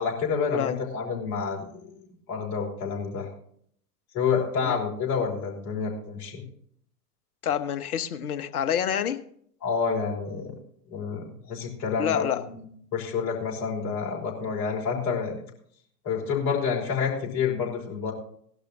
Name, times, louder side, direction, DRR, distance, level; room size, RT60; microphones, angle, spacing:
voice 1, 0.0-1.9 2.3-3.3 4.1-6.4 9.6-10.5 10.9-12.6 12.9-15.4 16.0-18.1, left 6 dB, 35° left, -1 dB, 4.9 m, -28 dB
voice 2, 7.4-9.2 12.0-12.4, left 9 dB, 65° left, 10 dB, 1.3 m, -27 dB
18.5 x 12.0 x 2.6 m, 0.63 s
figure-of-eight pair, 100°, 48 cm